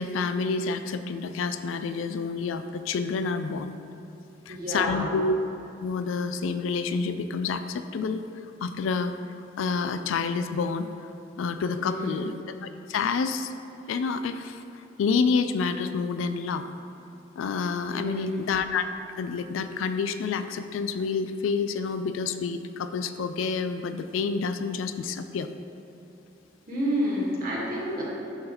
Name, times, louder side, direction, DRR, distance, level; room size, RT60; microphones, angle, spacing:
voice 1, 0.0-3.7 4.5-5.3 5.8-8.2 8.6-9.1 9.6-10.9 11.4-12.4 12.6-13.5 13.9-14.6 15.0-16.6 17.4-18.9 19.2-25.5, left 5 dB, 85° left, 10 dB, 0.3 m, -28 dB
voice 2, 4.5-5.1 11.7-12.2 17.9-18.4 26.7-28.1, equal, 50° right, -5 dB, 1.5 m, -29 dB
11.5 x 3.9 x 2.9 m, 2.7 s
head